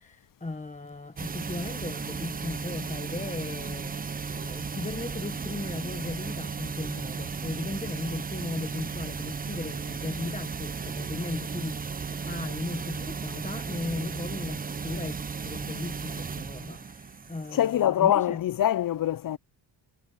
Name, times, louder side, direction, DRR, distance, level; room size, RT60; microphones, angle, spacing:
voice 1, 0.0-18.4, left 2 dB, 15° left, 1.2 m, -37 dB
sound 1, 1.2-17.8, right 5 dB, 20° right, 0.4 m, -35 dB
sound 2, 2.2-8.3, right 10 dB, 85° right, 1.6 m, -59 dB
voice 2, 17.5-19.4, left 11 dB, 45° left, 0.5 m, -24 dB
cardioid pair, 110°, 47 cm